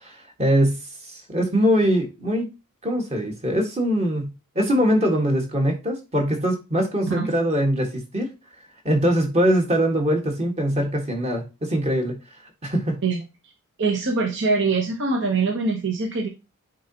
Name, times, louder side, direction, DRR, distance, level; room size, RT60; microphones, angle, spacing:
voice 1, 0.4-2.5 2.8-8.3 8.8-12.1 12.6-13.0, equal, 30° right, 2 dB, 1.6 m, -22 dB
voice 2, 13.8-16.3, right 4 dB, 55° right, 2 dB, 1.0 m, -23 dB
9.3 x 3.9 x 2.9 m, 0.27 s
head